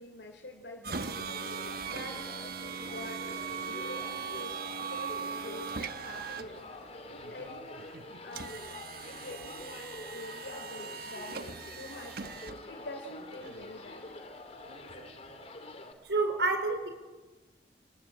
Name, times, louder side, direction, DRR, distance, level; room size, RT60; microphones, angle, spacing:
voice 1, 0.0-4.6 4.9-7.9 8.2-8.8 9.0-14.0, left 1 dB, 85° left, 1 dB, 3.3 m, -47 dB
sound 1, 0.8-15.5, right 6 dB, 60° right, 1.1 m, -41 dB
sound 2, 1.3-15.9, left 2 dB, 40° left, 2.9 m, -47 dB
voice 2, 16.0-16.9, right 3 dB, 85° right, 6 dB, 4.5 m, -28 dB
28.5 x 20.0 x 8.8 m, 1.3 s
head